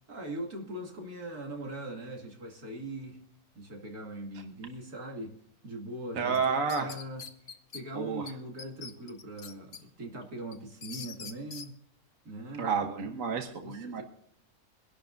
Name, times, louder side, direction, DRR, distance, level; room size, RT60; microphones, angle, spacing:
voice 1, 0.1-3.2 3.5-5.3 5.6-6.4 6.7-11.8 12.2-12.7 13.3-14.0, right 1 dB, 85° right, 3.1 m, -41 dB
voice 2, 6.1-6.9 7.9-8.3 12.6-14.0, right 5 dB, 65° right, 1.5 m, -30 dB
sound 1, 6.3-7.8 8.3-8.4 8.6-9.8 10.2-11.7, left 6 dB, 55° left, 1.3 m, -44 dB
23.5 x 11.5 x 2.6 m
omnidirectional pair, 1.6 m